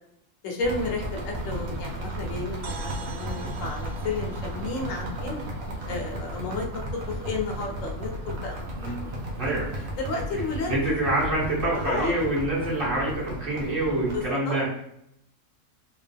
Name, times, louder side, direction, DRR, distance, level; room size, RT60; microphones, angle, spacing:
voice 1, 0.4-5.4 5.9-9.1 9.4-9.5 10.0-10.7 11.7-12.1 14.1-14.6, left 3 dB, 75° left, 1 dB, 1.1 m, -32 dB
sound 1, 0.6-14.3, right 1 dB, 90° right, 1.2 m, -34 dB
sound 2, 2.6-6.6, right 4 dB, 65° right, 0.5 m, -45 dB
voice 2, 9.4-9.9 10.3-10.4 10.7-14.7, right 1 dB, 45° right, -7 dB, 1.7 m, -26 dB
3.6 x 2.5 x 3.4 m, 0.78 s
omnidirectional pair, 1.4 m